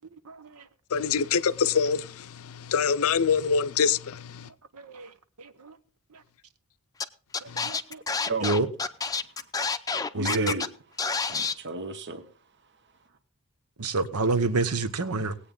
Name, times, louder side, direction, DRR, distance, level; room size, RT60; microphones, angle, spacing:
voice 1, 0.2-0.7 4.7-5.8 6.1-6.2 7.4-8.0 8.4-8.7 10.1-10.6 13.8-15.4, right 3 dB, 80° right, 1.0 m, -29 dB
voice 2, 0.9-2.0 2.7-4.0, left 6 dB, 65° left, 0.5 m, -23 dB
Scratching (performance technique), 7.0-7.1 7.3-10.7 11.0-11.5, left 4 dB, 15° left, 0.6 m, -28 dB
voice 3, 10.1-10.7 11.3-12.3, right 4 dB, 50° right, 1.1 m, -34 dB
19.0 x 8.5 x 3.8 m
head